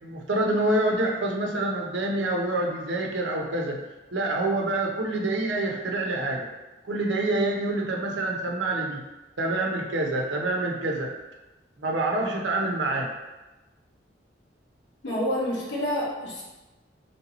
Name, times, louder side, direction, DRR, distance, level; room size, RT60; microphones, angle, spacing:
voice 1, 0.0-3.8 4.1-6.5 6.8-9.0 9.4-11.1 11.8-13.1, right 2 dB, 80° right, 0 dB, 0.7 m, -26 dB
voice 2, 15.0-16.4, equal, 75° left, -4 dB, 1.2 m, -28 dB
3.2 x 2.9 x 4.2 m, 1.1 s
head